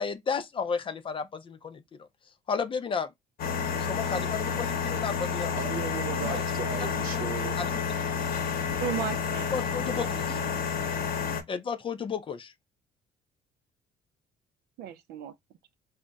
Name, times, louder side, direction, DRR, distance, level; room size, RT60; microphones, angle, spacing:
voice 1, 0.0-1.8 2.5-3.1 3.8-5.6 6.2-6.4 7.1-7.2 7.6-7.7 9.5-10.4 11.5-12.5, left 6 dB, 30° left, 0.4 m, -32 dB
sound 1, 3.4-11.4, left 6 dB, 60° left, 0.8 m, -30 dB
voice 2, 5.6-7.6, right 6 dB, 55° right, 0.8 m, -36 dB
voice 3, 8.8-9.5 9.8-10.6 14.8-15.3, right 9 dB, 75° right, 0.4 m, -36 dB
2.3 x 2.0 x 3.8 m
cardioid pair, 110°, 17 cm